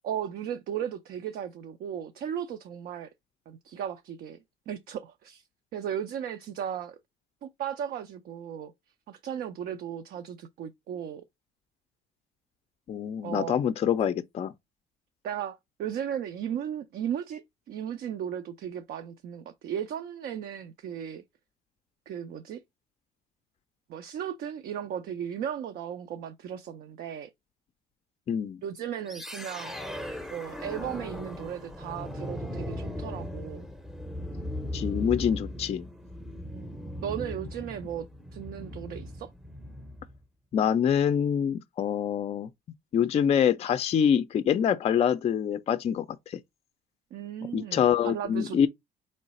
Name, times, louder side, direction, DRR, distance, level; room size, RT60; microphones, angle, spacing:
voice 1, 0.0-3.1 3.5-4.4 4.7-5.4 5.7-7.0 7.4-8.7 9.1-11.2 13.2-13.5 15.2-21.2 22.1-22.6 23.9-27.3 28.6-29.7 30.3-33.7 36.5-36.7 37.0-38.1 38.3-39.3 47.1-48.7, right 9 dB, 65° right, 0.5 m, -36 dB
voice 2, 12.9-14.5 28.3-28.6 34.7-35.9 40.5-42.5 42.9-46.4 47.5-48.7, left 8 dB, 40° left, 0.4 m, -25 dB
sound 1, 29.1-40.2, left 1 dB, ahead, 0.6 m, -38 dB
3.8 x 3.2 x 4.1 m
cardioid pair, 110°, 17 cm